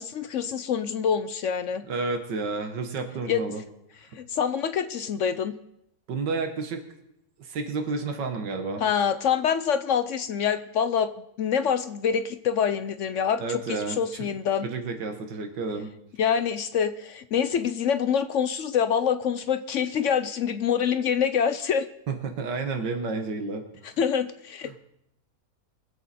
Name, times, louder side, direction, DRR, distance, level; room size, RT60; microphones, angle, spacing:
voice 1, 0.0-1.8 3.3-3.4 4.2-5.5 8.8-11.1 11.4-14.7 16.2-21.9 23.8-24.8, left 7 dB, 65° left, 11 dB, 0.7 m, -26 dB
voice 2, 1.9-3.6 6.1-6.8 7.4-8.8 13.4-14.3 14.6-15.9 22.1-23.6 24.7-24.8, right 4 dB, 85° right, 5 dB, 2.0 m, -31 dB
23.5 x 7.8 x 4.2 m, 0.77 s
omnidirectional pair, 1.9 m